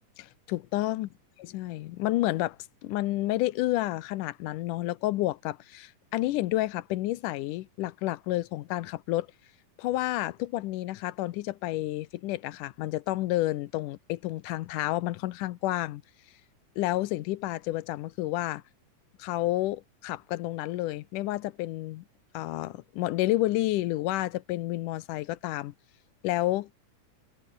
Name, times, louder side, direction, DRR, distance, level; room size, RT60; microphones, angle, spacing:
voice 1, 0.2-1.1 1.4-2.6 2.8-9.3 9.8-16.0 16.8-18.6 19.2-22.0 22.3-25.7 26.2-26.8, left 17 dB, 90° left, 2.3 m, -30 dB
omnidirectional pair, 3.7 m